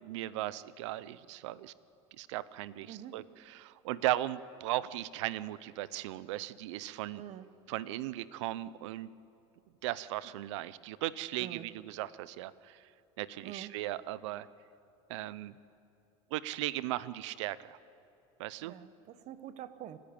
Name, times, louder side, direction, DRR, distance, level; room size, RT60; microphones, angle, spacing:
voice 1, 0.0-1.7 2.2-7.2 7.7-9.1 9.8-12.8 13.2-14.5 15.1-15.5 16.3-17.8 18.4-18.7, right 15 dB, 90° right, 17 dB, 0.7 m, -37 dB
voice 2, 2.9-3.2 7.1-7.5 11.4-11.7 13.4-13.8 18.6-20.0, right 11 dB, 50° right, 12 dB, 1.1 m, -46 dB
29.0 x 10.5 x 8.8 m, 2.7 s
supercardioid pair, 120°, 15 cm